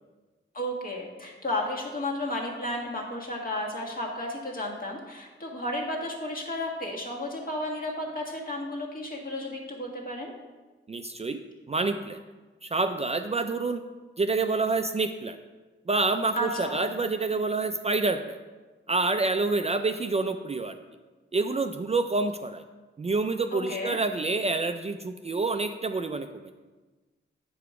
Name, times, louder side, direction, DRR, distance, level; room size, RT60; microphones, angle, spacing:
voice 1, 0.5-10.3 16.3-16.9 23.5-24.0, left 1 dB, 45° left, -1 dB, 1.5 m, -33 dB
voice 2, 10.9-11.4 11.7-12.2 12.6-13.8 14.2-15.4 15.9-18.4 18.9-20.8 21.3-22.6 23.0-26.5, right 3 dB, 30° right, 7 dB, 0.3 m, -27 dB
7.8 x 5.0 x 4.7 m, 1.3 s
wide cardioid pair, 85°, 21 cm